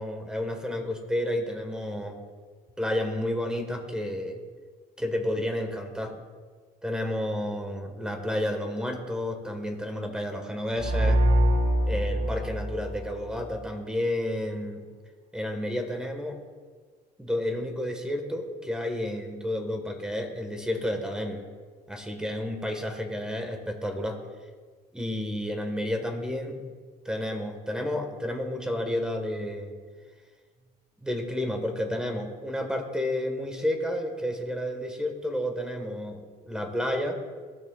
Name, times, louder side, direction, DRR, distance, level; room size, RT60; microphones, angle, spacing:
voice 1, 0.0-2.2 2.8-4.4 5.0-6.2 6.8-11.2 11.9-14.9 15.3-16.4 17.2-21.4 21.9-24.2 24.9-26.6 27.0-29.7 31.0-37.2, left 1 dB, 5° right, 4 dB, 1.3 m, -31 dB
sound 1, 10.7-13.6, right 1 dB, 65° right, 1.7 m, -24 dB
15.5 x 6.2 x 2.3 m, 1.5 s
cardioid pair, 110°, 17 cm